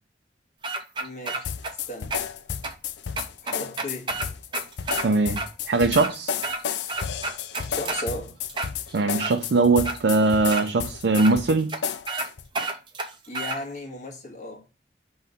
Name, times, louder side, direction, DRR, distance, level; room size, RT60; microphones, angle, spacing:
sound 1, 0.6-1.7 2.1-2.2 2.6-2.7 3.2-5.1 5.4-5.5 5.8-6.6 6.9-8.1 8.5-9.3 9.8-10.0 10.5-10.6 11.2-11.3 11.7-11.8 12.1-12.3 12.5-13.6, right 3 dB, 25° right, 0.8 m, -30 dB
voice 1, 1.0-1.5 1.9-2.2 3.4-4.1 7.7-8.4 13.3-14.7, left 1 dB, 45° left, 1.5 m, -35 dB
sound 2, 1.4-12.5, left 8 dB, 85° left, 0.5 m, -32 dB
voice 2, 5.0-6.3 8.9-11.7, right 3 dB, 80° right, 0.5 m, -21 dB
5.6 x 3.2 x 5.2 m
head